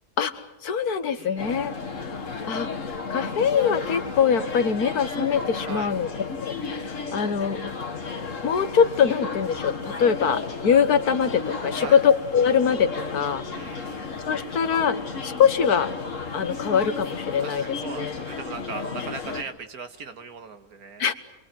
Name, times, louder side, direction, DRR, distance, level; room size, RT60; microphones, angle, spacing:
voice 1, 0.2-1.7 2.0-2.7 3.1-6.1 6.4-7.6 8.4-13.5 14.3-15.0 15.2-15.9 16.3-18.2 21.0-21.1, left 7 dB, 85° left, 11 dB, 1.8 m, -23 dB
voice 2, 1.2-1.5 5.7-5.9 11.7-12.0 13.5-14.1 17.4-21.1, right 4 dB, 75° right, 9 dB, 2.1 m, -38 dB
sound 1, 1.4-19.4, left 4 dB, 55° left, 2.2 m, -33 dB
27.5 x 22.5 x 9.2 m, 0.88 s
omnidirectional pair, 1.6 m